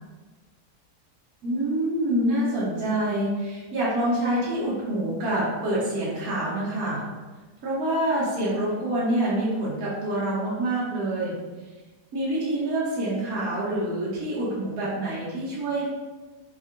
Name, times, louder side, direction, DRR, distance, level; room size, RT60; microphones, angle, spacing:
voice 1, 1.4-7.1 7.6-11.4 12.1-15.8, right 1 dB, 65° right, -8 dB, 1.3 m, -26 dB
3.6 x 3.1 x 2.5 m, 1.3 s
omnidirectional pair, 1.8 m